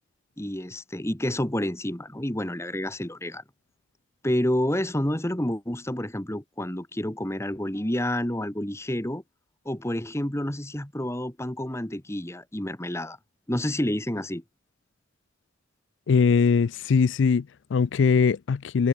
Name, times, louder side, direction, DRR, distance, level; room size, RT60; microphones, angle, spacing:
voice 1, 0.4-3.4 4.2-9.2 9.7-13.2 13.5-14.4, left 1 dB, 15° left, 1.8 m, -29 dB
voice 2, 16.1-18.9, left 5 dB, 90° left, 0.4 m, -21 dB
head